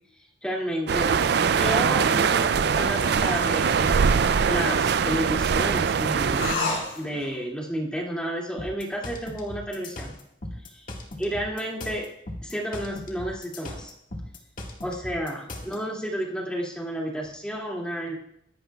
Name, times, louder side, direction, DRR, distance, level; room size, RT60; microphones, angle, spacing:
voice 1, 0.4-1.1 1.5-3.8 4.4-6.5 7.0-10.2 10.6-10.9 11.2-12.1 12.4-13.9 14.8-18.2, equal, 5° left, -3 dB, 2.4 m, -31 dB
sound 1, 0.9-6.6, right 6 dB, 55° right, 0.4 m, -22 dB
sound 2, 1.8-5.2 6.3-7.3, left 3 dB, 85° left, 5.0 m, -35 dB
sound 3, 8.6-15.8, left 1 dB, 45° left, 1.8 m, -38 dB
23.0 x 11.5 x 2.3 m, 0.76 s
head